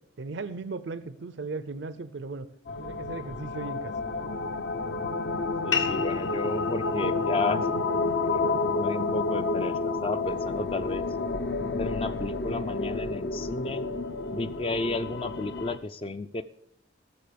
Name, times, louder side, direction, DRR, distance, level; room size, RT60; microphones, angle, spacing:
voice 1, 0.2-2.5 2.7-3.9, right 3 dB, 65° right, 13 dB, 0.5 m, -36 dB
sound 1, 2.7-15.8, left 3 dB, 60° left, 0.6 m, -30 dB
voice 2, 5.6-7.7 8.3-11.1 11.7-13.9 14.3-16.4, left 3 dB, 30° left, 11 dB, 0.4 m, -33 dB
sound 2, 5.7-10.7, left 6 dB, 75° left, 1.7 m, -37 dB
14.0 x 6.7 x 6.8 m, 0.79 s
head